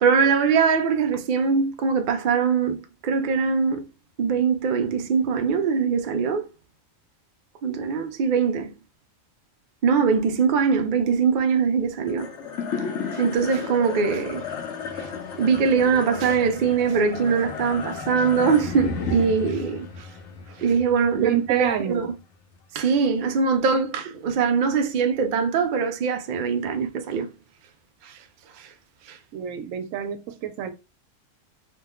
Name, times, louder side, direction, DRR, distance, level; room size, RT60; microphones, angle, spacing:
voice 1, 0.0-3.9 4.2-6.5 7.6-8.7 9.8-12.3 13.1-14.5 15.0-15.1 15.4-20.1 20.6-22.1 22.7-27.3 28.0-28.2 28.6-28.7 29.1-29.2, right 5 dB, 65° right, 0.5 m, -22 dB
sound 1, 12.1-22.6, left 5 dB, 65° left, 1.0 m, -34 dB
voice 2, 21.1-22.1 29.3-30.7, right 8 dB, 80° right, 1.0 m, -27 dB
2.9 x 2.1 x 3.5 m
omnidirectional pair, 1.4 m